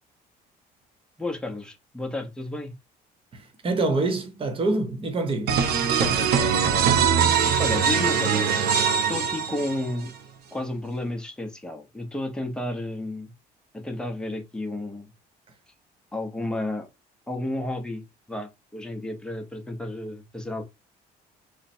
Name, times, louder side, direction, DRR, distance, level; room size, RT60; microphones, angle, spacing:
voice 1, 1.2-2.7 6.0-6.9 7.3-8.5 9.1-10.1 10.5-13.3 13.7-15.1 16.1-16.9 17.3-18.0 18.3-20.6, left 2 dB, 5° left, 0.8 m, -32 dB
voice 2, 3.3-5.5, right 2 dB, 30° right, 1.0 m, -26 dB
sound 1, 5.5-10.1, right 7 dB, 75° right, 0.7 m, -22 dB
3.2 x 2.2 x 4.2 m
cardioid pair, 110°, 17 cm